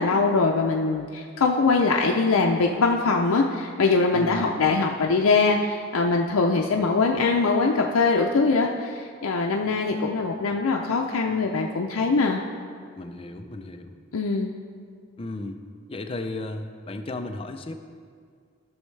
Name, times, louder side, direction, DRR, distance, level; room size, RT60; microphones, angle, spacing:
voice 1, 0.0-12.4 14.1-14.5, left 4 dB, 85° left, 0 dB, 0.5 m, -22 dB
voice 2, 4.1-4.5 13.0-14.0 15.2-15.6 15.9-17.7, left 2 dB, 25° left, 6 dB, 0.4 m, -34 dB
13.5 x 6.3 x 3.2 m, 2.1 s
head